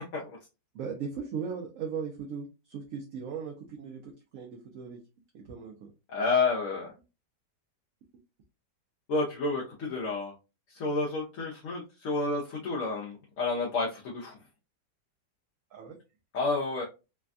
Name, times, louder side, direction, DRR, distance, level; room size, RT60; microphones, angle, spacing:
voice 1, 0.7-5.0 5.3-5.9 15.7-15.9, right 6 dB, 70° right, 1 dB, 0.8 m, -38 dB
voice 2, 6.1-6.9 9.1-10.3 10.7-14.4 16.3-16.8, left 3 dB, 60° left, -3 dB, 0.9 m, -30 dB
3.3 x 2.2 x 2.4 m, 0.29 s
omnidirectional pair, 1.8 m